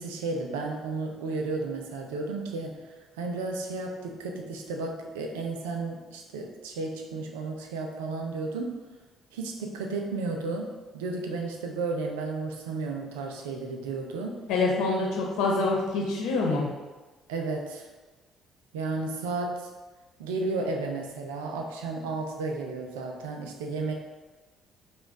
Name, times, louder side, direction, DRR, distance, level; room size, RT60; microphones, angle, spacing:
voice 1, 0.0-8.8 9.3-10.7 10.9-14.4 17.3-17.9 18.7-19.7 20.2-23.9, right 3 dB, 75° right, 2 dB, 0.5 m, -33 dB
voice 2, 14.5-16.7, left 3 dB, 65° left, -2 dB, 1.0 m, -26 dB
5.0 x 2.4 x 3.7 m, 1.2 s
figure-of-eight pair, 50°, 0 cm